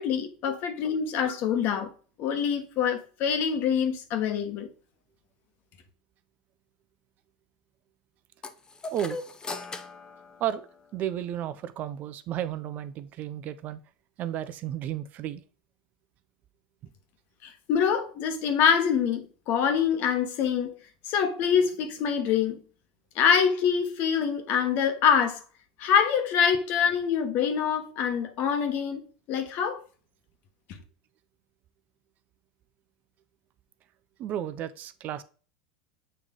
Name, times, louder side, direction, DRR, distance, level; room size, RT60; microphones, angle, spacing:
voice 1, 0.0-1.9 2.2-4.7 17.4-20.7 21.1-22.6 23.1-25.4 25.8-29.0 29.3-29.8, left 7 dB, 50° left, 1.3 m, -25 dB
sound 1, 8.4-11.1, left 3 dB, 20° left, 0.8 m, -40 dB
voice 2, 8.9-9.2 10.4-10.7 10.9-13.8 14.2-15.4 34.2-35.2, right 11 dB, 45° right, 0.6 m, -33 dB
7.8 x 3.2 x 3.7 m
hypercardioid pair, 105°, 4 cm